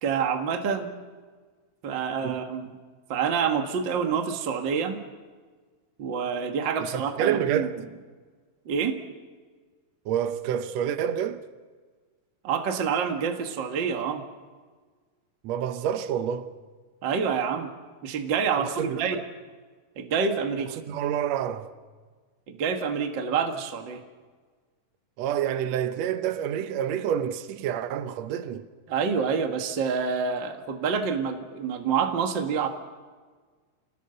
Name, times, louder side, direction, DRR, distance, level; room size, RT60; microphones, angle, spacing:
voice 1, 0.0-0.9 1.8-2.8 3.1-5.0 6.0-7.7 8.6-9.0 12.4-14.2 17.0-17.7 18.0-19.2 20.0-20.7 22.5-24.0 28.9-32.7, right 6 dB, 45° right, 1.5 m, -27 dB
voice 2, 6.9-7.8 10.0-11.4 15.4-16.5 18.6-19.2 20.9-21.7 25.2-28.7, right 9 dB, 90° right, 1.5 m, -28 dB
28.0 x 18.5 x 6.8 m
omnidirectional pair, 4.4 m